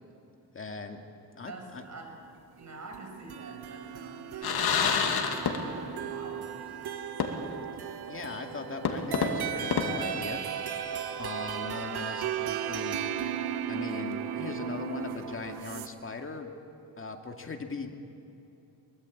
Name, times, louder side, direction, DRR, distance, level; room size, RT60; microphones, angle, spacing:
voice 1, 0.5-1.0 1.3-1.8 8.1-10.9 11.2-13.2 13.7-16.5 17.0-17.9, left 4 dB, 35° left, 4 dB, 2.3 m, -39 dB
voice 2, 1.4-2.2 2.6-4.9 5.3-6.8, right 2 dB, 45° right, 2 dB, 5.9 m, -46 dB
sound 1, 2.9-15.9, right 9 dB, 85° right, 1.3 m, -36 dB
sound 2, 4.4-6.0 6.3-6.4 7.2-7.7 8.1-8.2 8.9-10.8, left 6 dB, 85° left, 2.3 m, -29 dB
23.0 x 21.5 x 8.6 m, 3.0 s
cardioid pair, 130°, 37 cm